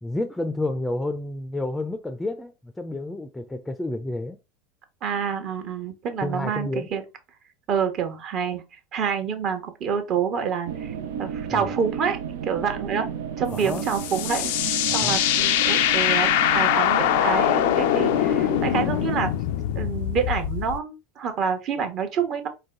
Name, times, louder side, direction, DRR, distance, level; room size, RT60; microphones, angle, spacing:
voice 1, 0.0-4.4 6.2-6.9 11.5-11.7 13.5-13.8 14.9-15.2, left 2 dB, 10° left, 0.5 m, -30 dB
voice 2, 5.0-7.0 7.7-8.6 8.9-12.2 12.4-13.1 13.4-14.5 14.9-19.3 19.7-22.5, right 6 dB, 45° right, 1.1 m, -27 dB
sound 1, 10.7-19.2, right 7 dB, 70° right, 0.5 m, -33 dB
sound 2, 13.6-20.8, left 12 dB, 65° left, 0.4 m, -23 dB
4.7 x 2.3 x 3.7 m
hypercardioid pair, 85°, 0 cm